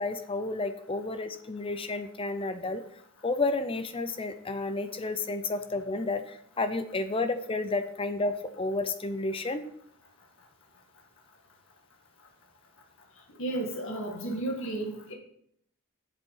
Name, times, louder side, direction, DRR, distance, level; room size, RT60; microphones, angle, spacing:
voice 1, 0.0-2.8 3.2-9.7, left 3 dB, 25° left, 10 dB, 0.6 m, -31 dB
voice 2, 13.4-15.1, right 2 dB, 60° left, 1 dB, 1.9 m, -33 dB
8.1 x 7.2 x 5.6 m, 0.68 s
head